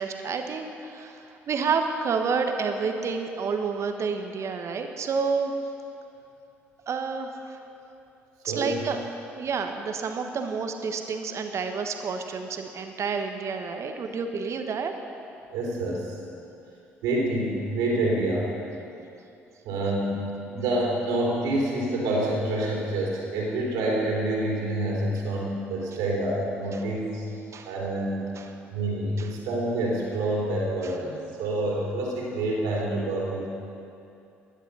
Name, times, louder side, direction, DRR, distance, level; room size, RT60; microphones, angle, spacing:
voice 1, 0.0-5.5 6.9-7.6 8.4-9.0 9.3-14.9 27.5-27.7 28.4-28.5 29.2-29.3, right 5 dB, 45° right, 6 dB, 1.2 m, -29 dB
voice 2, 8.5-8.8 15.5-16.2 17.0-18.5 19.6-27.3 27.7-28.3 28.7-33.5, right 1 dB, 65° right, -3 dB, 3.5 m, -27 dB
17.0 x 11.0 x 5.5 m, 2.7 s
figure-of-eight pair, 50°, 7 cm